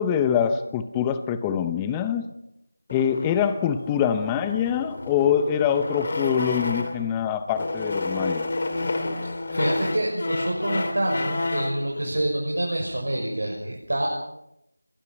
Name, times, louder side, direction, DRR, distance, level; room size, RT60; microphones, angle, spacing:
voice 1, 0.0-2.2 2.9-8.5, left 8 dB, 10° left, 10 dB, 0.8 m, -24 dB
sound 1, 2.9-7.1 7.5-11.8, left 2 dB, 35° left, 2.7 m, -30 dB
voice 2, 9.2-14.1, right 1 dB, 65° right, -1 dB, 6.4 m, -27 dB
29.5 x 22.0 x 5.5 m, 0.83 s
figure-of-eight pair, 170°, 0 cm